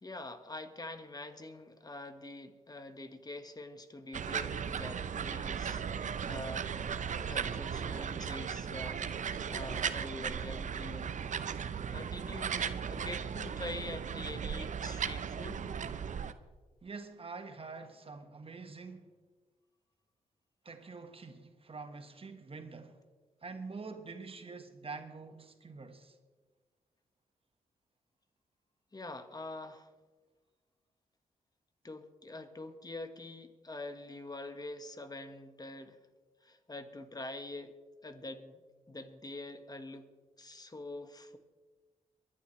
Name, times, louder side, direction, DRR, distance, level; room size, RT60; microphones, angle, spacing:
voice 1, 0.0-6.7 7.3-11.1 11.9-15.7 28.9-29.9 31.8-36.0 36.4-37.7 38.0-38.6 38.9-40.1 40.4-41.4, left 2 dB, 25° left, 1.6 m, -45 dB
sound 1, 4.1-16.3, right 7 dB, 60° right, 0.8 m, -36 dB
voice 2, 16.8-19.1 20.6-23.0 23.4-26.2, right 4 dB, 40° right, 1.5 m, -46 dB
23.5 x 11.5 x 3.3 m
supercardioid pair, 50°, 14 cm